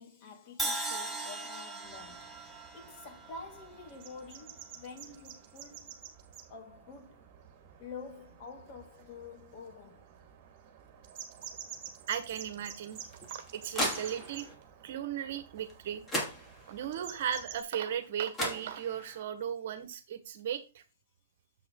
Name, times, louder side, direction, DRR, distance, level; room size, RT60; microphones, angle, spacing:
voice 1, 0.0-6.0 6.5-7.2 7.8-10.1, left 4 dB, 35° left, 2.3 m, -48 dB
Crash cymbal, 0.6-4.6, right 2 dB, 5° right, 1.3 m, -39 dB
sound 1, 1.8-17.6, right 8 dB, 40° right, 2.3 m, -50 dB
voice 2, 12.1-13.0 13.3-14.5 14.8-16.0 16.7-20.8, right 9 dB, 55° right, 1.5 m, -36 dB
sound 2, 12.9-14.5 15.7-15.8 16.1-16.9 18.0-18.1 18.3-19.2, left 1 dB, 15° left, 2.7 m, -36 dB
7.7 x 5.9 x 3.9 m
hypercardioid pair, 120°, 0 cm